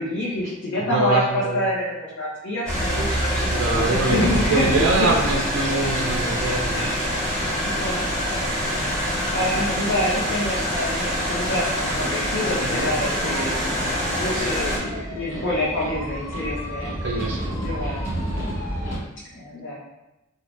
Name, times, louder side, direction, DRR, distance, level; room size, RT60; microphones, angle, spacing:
voice 1, 0.0-4.9 6.7-8.2 8.6-13.6 14.0-16.9 17.4-18.0 19.3-19.8, left 1 dB, 60° left, -6 dB, 0.5 m, -27 dB
voice 2, 0.8-1.6 3.5-4.2 4.5-6.9 12.6-12.8 17.0-17.6, right 2 dB, 60° right, 0 dB, 0.4 m, -24 dB
sound 1, 2.7-14.8, equal, 5° left, 1.0 m, -25 dB
sound 2, 12.8-19.0, equal, 35° left, 1.1 m, -31 dB
3.3 x 2.0 x 2.4 m, 0.98 s
head